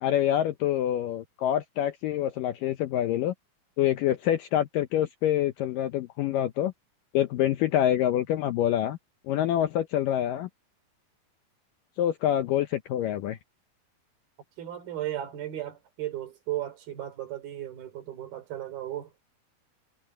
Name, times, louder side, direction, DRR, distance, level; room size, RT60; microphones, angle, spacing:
voice 1, 0.0-3.3 3.8-6.7 7.1-9.0 9.3-10.5 12.0-13.4, left 11 dB, 75° left, 2.1 m, -26 dB
voice 2, 14.6-19.1, right 13 dB, 65° right, 4.8 m, -35 dB
omnidirectional pair, 4.7 m